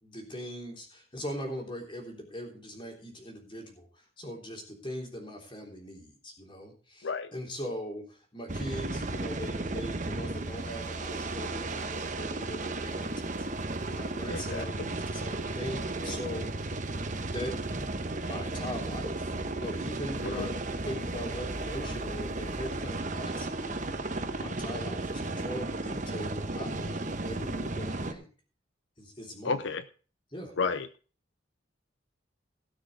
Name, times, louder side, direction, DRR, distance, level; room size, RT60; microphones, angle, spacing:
voice 1, 0.0-16.8 17.2-17.6 18.2-23.5 24.4-28.3 29.0-29.6 30.3-30.5, equal, 25° left, 1 dB, 3.5 m, -40 dB
sound 1, 8.5-28.1, right 2 dB, 40° right, 1.1 m, -34 dB
voice 2, 14.3-14.9 20.2-20.5 29.4-29.8 30.6-30.9, left 4 dB, 75° left, 12 dB, 0.6 m, -32 dB
17.5 x 6.5 x 4.9 m, 0.39 s
head